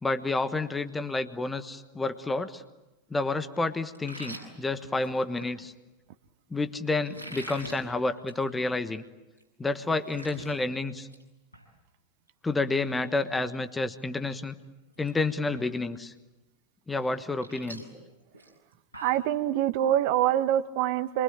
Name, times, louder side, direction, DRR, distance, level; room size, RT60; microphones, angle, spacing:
voice 1, 0.0-2.6 3.1-5.7 6.5-9.0 9.6-11.1 12.4-14.6 15.0-16.1 16.9-17.8, left 3 dB, 10° left, 10 dB, 1.3 m, -29 dB
sound 1, 3.9-5.5 7.0-7.8 8.2-8.4 8.8-8.9 9.4-9.5 9.7-10.5 10.9-11.2 11.5-11.7 13.5-13.6 14.1-14.4 14.6-15.1 15.5-15.6 17.0-19.3, right 1 dB, 85° left, 7.5 m, -44 dB
voice 2, 19.0-21.2, right 12 dB, 45° right, 12 dB, 1.3 m, -25 dB
27.0 x 23.5 x 8.9 m, 1.0 s
figure-of-eight pair, 90°, 0 cm